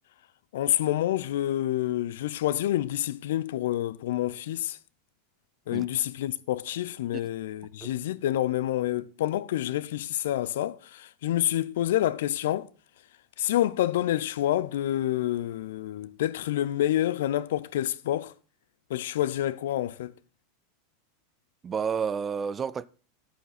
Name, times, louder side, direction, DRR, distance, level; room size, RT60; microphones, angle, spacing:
voice 1, 0.5-4.8 5.7-12.7 13.4-18.3 18.9-20.1, left 13 dB, 70° left, 0.5 m, -28 dB
voice 2, 21.6-22.9, right 6 dB, 25° right, 0.4 m, -30 dB
10.5 x 8.5 x 4.2 m
hypercardioid pair, 95°, 0 cm